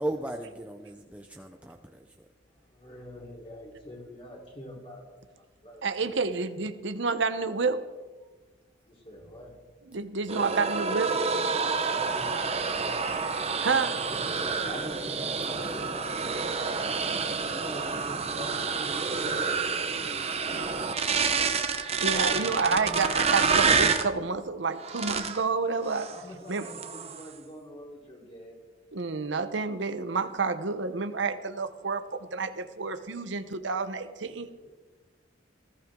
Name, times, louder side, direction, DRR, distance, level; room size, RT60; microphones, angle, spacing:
voice 1, 0.0-2.3 10.8-11.0 11.5-12.0 14.3-15.8 16.0-16.3 17.0-18.5 18.9-19.2, right 1 dB, 5° right, 3 dB, 0.7 m, -40 dB
voice 2, 2.5-5.8 8.8-9.6 11.8-16.5 16.8-17.0 17.6-20.4 22.0-23.1 26.0-28.6 34.4-34.7, equal, 30° left, -2 dB, 3.8 m, -45 dB
voice 3, 5.8-7.9 9.9-11.2 13.6-13.9 22.0-26.1 26.5-26.6 28.9-32.0 32.3-34.5, right 4 dB, 70° right, 9 dB, 0.9 m, -29 dB
sound 1, 10.3-24.1 24.8-25.4 25.9-26.2 26.5-27.3, right 5 dB, 35° right, 1.0 m, -28 dB
20.0 x 14.5 x 3.7 m, 1.3 s
head